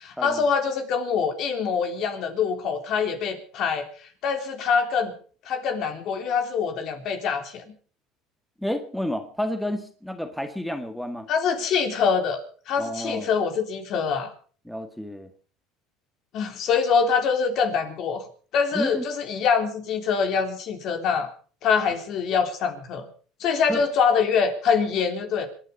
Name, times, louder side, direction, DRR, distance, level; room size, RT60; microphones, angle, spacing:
voice 1, 0.0-3.9 4.2-5.1 5.5-7.6 11.3-12.4 12.7-14.3 16.3-18.3 18.5-21.3 21.6-23.1 23.4-25.5, left 6 dB, 55° left, 7 dB, 3.4 m, -24 dB
voice 2, 8.6-11.3 12.8-13.3 14.7-15.3 18.7-19.0 23.7-23.8, left 1 dB, ahead, 8 dB, 1.7 m, -30 dB
26.0 x 9.9 x 5.4 m, 0.41 s
supercardioid pair, 105°, 0 cm